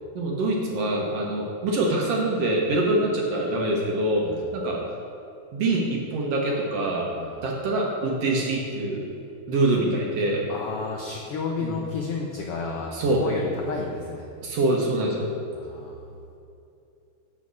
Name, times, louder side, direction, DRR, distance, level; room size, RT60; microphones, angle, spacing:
voice 1, 0.1-4.3 4.5-4.8 5.5-7.1 7.4-9.1 9.5-10.5 11.6-11.8 12.9-13.2 14.4-15.3, right 2 dB, 65° right, -1 dB, 1.7 m, -24 dB
voice 2, 10.5-14.3 15.5-16.1, left 4 dB, 85° left, 0 dB, 1.3 m, -32 dB
7.7 x 5.6 x 6.2 m, 2.6 s
omnidirectional pair, 3.5 m